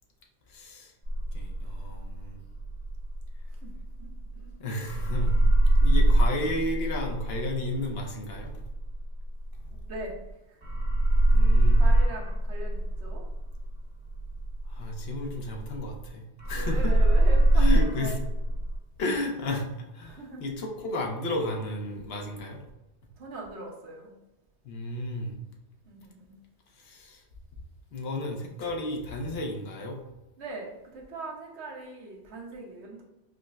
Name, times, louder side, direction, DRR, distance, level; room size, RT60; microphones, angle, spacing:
voice 1, 0.5-0.9 1.3-2.4 4.6-5.3 5.8-8.6 11.3-11.8 14.7-16.9 17.5-18.2 19.0-22.6 24.6-25.4 26.8-27.2 27.9-30.0, left 1 dB, 65° left, 1 dB, 0.9 m, -33 dB
sound 1, 1.0-4.5 4.8-10.3 10.6-16.1 16.4-18.8, right 1 dB, 55° right, 1.4 m, -24 dB
voice 2, 4.0-4.5 9.7-10.2 10.5-10.6 11.2-11.5 11.7-13.2 16.5-18.2 20.0-20.4 23.2-24.1 25.9-26.4 30.4-33.0, right 2 dB, 70° right, -1 dB, 1.1 m, -40 dB
4.9 x 2.0 x 2.3 m, 0.98 s
omnidirectional pair, 1.2 m